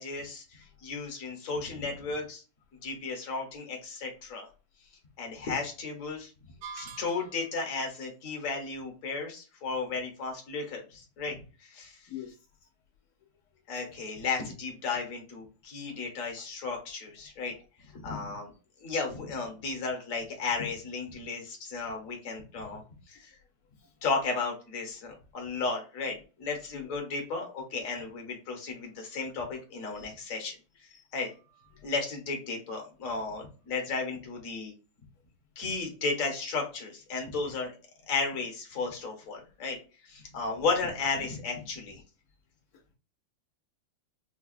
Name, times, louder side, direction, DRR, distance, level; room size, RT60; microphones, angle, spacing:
voice 1, 0.0-2.4 2.8-4.5 5.2-6.3 6.7-12.1 13.7-17.5 17.9-18.5 18.8-23.4 24.0-30.5 31.1-31.3 31.8-34.7 35.6-37.7 38.1-39.8 40.0-42.0, left 4 dB, 50° left, 2 dB, 1.2 m, -34 dB
sound 1, 6.6-7.6, right 5 dB, 75° right, 1.3 m, -44 dB
voice 2, 12.1-12.4 15.9-16.0 17.9-18.1 23.8-23.9 26.7-26.9 29.9-30.0 30.9-31.0 31.7-31.8 42.7-42.9, left 11 dB, 70° left, -1 dB, 0.9 m, -45 dB
4.9 x 2.3 x 2.4 m, 0.33 s
omnidirectional pair, 2.4 m